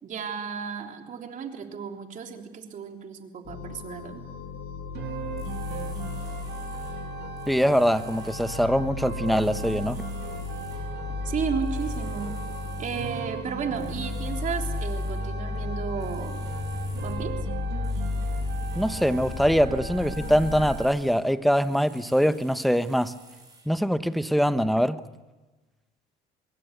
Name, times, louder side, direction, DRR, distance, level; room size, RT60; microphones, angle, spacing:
voice 1, 0.0-4.2 11.2-12.3 12.8-16.5 17.0-17.3, right 6 dB, 50° right, 3 dB, 3.5 m, -33 dB
sound 1, 3.4-20.7, left 4 dB, 85° left, 7.1 m, -34 dB
sound 2, 5.0-21.0, right 10 dB, 80° right, 2.6 m, -39 dB
sound 3, 5.4-7.0 7.4-8.7 9.2-10.9 11.6-13.3 13.7-15.3 16.0-17.2 17.8-21.2 21.6-23.7, right 3 dB, 20° right, 7.1 m, -52 dB
voice 2, 7.5-10.0 18.8-23.1 23.7-25.0, equal, ahead, 11 dB, 1.1 m, -23 dB
26.0 x 22.0 x 6.8 m, 1.2 s
cardioid pair, 110°, 17 cm